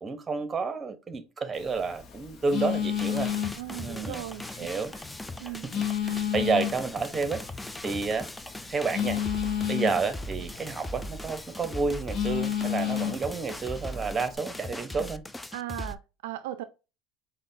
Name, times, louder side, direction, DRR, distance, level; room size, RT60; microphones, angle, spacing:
voice 1, 0.0-3.3 3.8-4.3 4.6-4.9 5.7-7.4 7.8-8.3 8.7-9.2 9.7-15.2, right 4 dB, 25° right, 0.8 m, -30 dB
Telephone, 1.5-14.4, left 9 dB, 40° left, 0.8 m, -33 dB
sound 1, 2.9-15.9, left 1 dB, 10° left, 0.3 m, -39 dB
voice 2, 3.6-4.7 4.9-5.0 5.4-5.7 15.5-16.6, right 14 dB, 85° right, 0.3 m, -37 dB
5.0 x 2.1 x 2.6 m
supercardioid pair, 90°, 0 cm